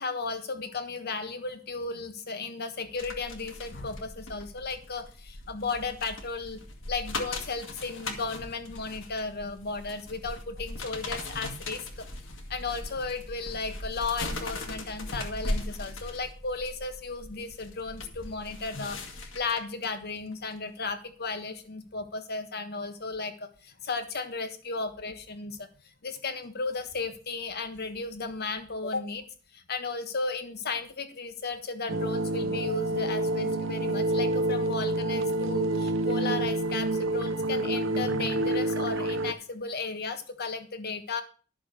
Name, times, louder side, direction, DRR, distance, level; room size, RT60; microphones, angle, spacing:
voice 1, 0.0-6.6 6.9-12.0 12.5-25.7 26.0-29.2 29.5-41.2, left 4 dB, 50° left, 9 dB, 1.4 m, -35 dB
sound 1, 3.0-19.9 20.3-20.5, left 2 dB, 70° left, 2.0 m, -39 dB
sound 2, 31.9-39.3, right 2 dB, 70° right, 0.8 m, -28 dB
11.5 x 6.7 x 6.6 m, 0.39 s
head